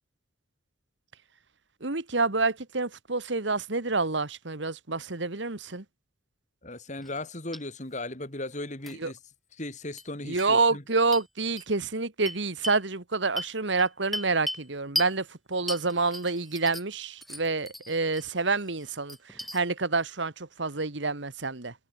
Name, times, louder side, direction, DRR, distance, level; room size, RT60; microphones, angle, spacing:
voice 1, 1.8-5.8 9.0-9.1 10.3-21.7, right 3 dB, 65° right, 1.7 m, -28 dB
voice 2, 6.6-9.2 9.6-10.8, left 2 dB, 40° left, 3.1 m, -37 dB
sound 1, 7.0-7.2 7.5-7.6 8.8-8.9 10.0-10.1 10.4-10.5 11.1-11.2 11.6-11.7 12.2-12.8 13.4-14.7 14.9-15.1 15.7-16.9 17.2-18.2 18.7-19.6, equal, ahead, 2.9 m, -36 dB
head